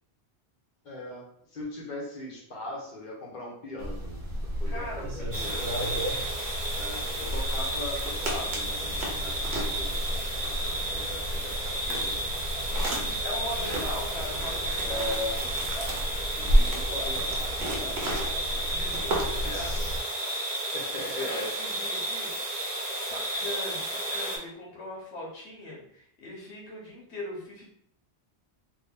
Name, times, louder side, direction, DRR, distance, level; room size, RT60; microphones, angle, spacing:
voice 1, 0.8-6.0 6.7-11.6 11.8-12.3 12.7-13.9 14.8-15.5 16.4-18.6 19.3-20.0 20.7-21.5, left 1 dB, 50° left, -2 dB, 1.0 m, -40 dB
sound 1, 3.8-20.0, equal, 75° right, 1.1 m, -31 dB
voice 2, 4.7-6.0 13.2-15.0 18.6-19.8 21.2-22.6 23.0-27.6, left 1 dB, 90° left, -3 dB, 1.2 m, -40 dB
sound 2, 5.3-24.4, right 1 dB, 35° right, 0.8 m, -33 dB
2.7 x 2.6 x 3.6 m, 0.68 s
omnidirectional pair, 1.1 m